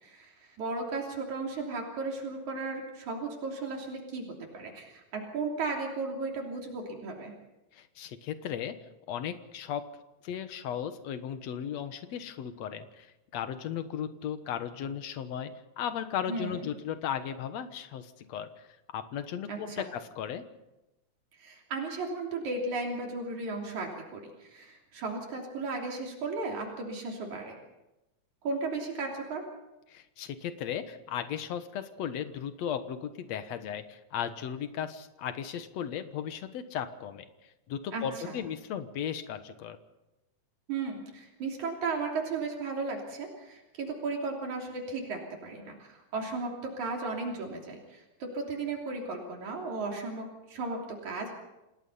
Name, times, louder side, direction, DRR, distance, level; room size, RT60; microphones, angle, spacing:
voice 1, 0.0-7.3 16.3-16.6 19.5-19.8 21.4-27.6 28.4-29.4 37.9-38.4 40.7-51.3, right 3 dB, 85° right, 0 dB, 4.5 m, -35 dB
voice 2, 7.7-8.7 9.1-9.8 10.2-20.4 29.9-37.3 37.7-39.8, left 9 dB, 70° left, 10 dB, 2.4 m, -36 dB
28.0 x 18.0 x 5.6 m, 0.97 s
omnidirectional pair, 3.3 m